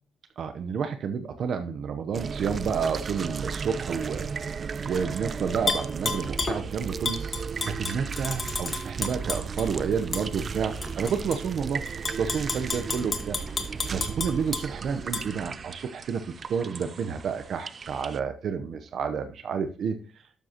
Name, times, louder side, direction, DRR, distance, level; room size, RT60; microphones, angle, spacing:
voice 1, 0.4-4.3 4.8-7.2 7.6-11.8 12.2-13.4 13.9-20.0, right 6 dB, 60° right, 9 dB, 0.8 m, -30 dB
sound 1, 2.1-18.2, right 5 dB, 45° right, 0.4 m, -35 dB
Tap / Glass, 5.7-6.6 7.0-9.7 10.1-10.3 10.8-11.4 11.9-14.6 15.1-15.2, left 4 dB, 35° left, 1.7 m, -31 dB
12.0 x 7.6 x 3.0 m, 0.36 s
cardioid pair, 90°, 0 cm